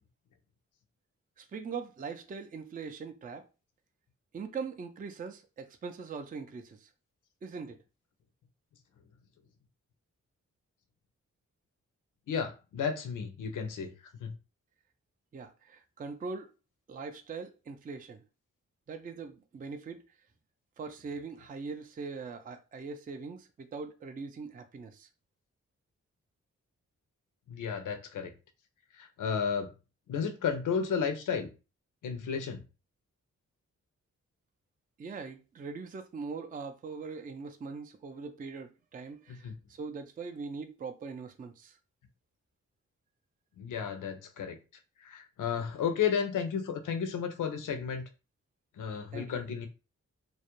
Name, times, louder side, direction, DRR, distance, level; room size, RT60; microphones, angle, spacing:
voice 1, 1.4-3.4 4.3-6.9 7.4-7.8 15.3-16.5 16.9-18.2 18.9-20.0 20.8-25.1 35.0-41.8 49.1-49.4, right 4 dB, 25° right, 0.4 m, -41 dB
voice 2, 12.3-13.9 14.2-14.3 27.5-28.3 29.0-29.7 30.1-31.5 32.0-32.6 39.3-39.5 43.6-44.6 45.0-48.0 48.8-49.7, left 6 dB, 75° left, 0.6 m, -33 dB
2.3 x 2.0 x 2.9 m
cardioid pair, 50°, 32 cm